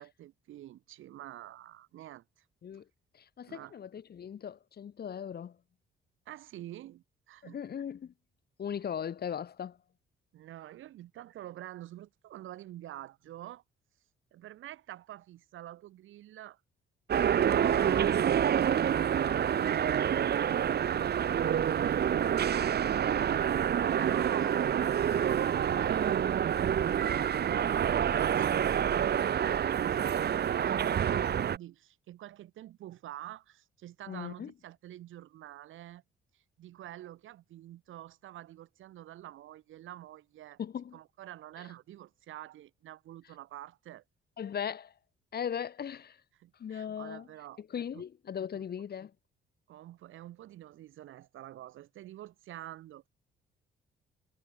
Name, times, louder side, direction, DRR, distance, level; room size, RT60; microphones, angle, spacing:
voice 1, 0.0-2.4 3.5-3.7 6.3-7.6 10.3-13.6 14.3-16.6 17.2-21.2 23.6-25.1 25.5-26.1 28.0-28.9 29.2-36.0 36.3-40.6 40.9-44.0 46.4-47.6 47.9-48.0 48.5-48.6 49.7-53.1, right 13 dB, 80° right, 5.4 m, -47 dB
voice 2, 3.1-5.6 7.4-8.1 8.6-9.8 34.1-34.5 40.6-41.0 41.6-41.7 44.4-44.9 45.3-46.2 46.6-47.3 47.6-49.1, left 8 dB, 50° left, 2.4 m, -38 dB
sound 1, 17.1-31.6, right 9 dB, 55° right, 1.6 m, -27 dB
cardioid pair, 90°, 20 cm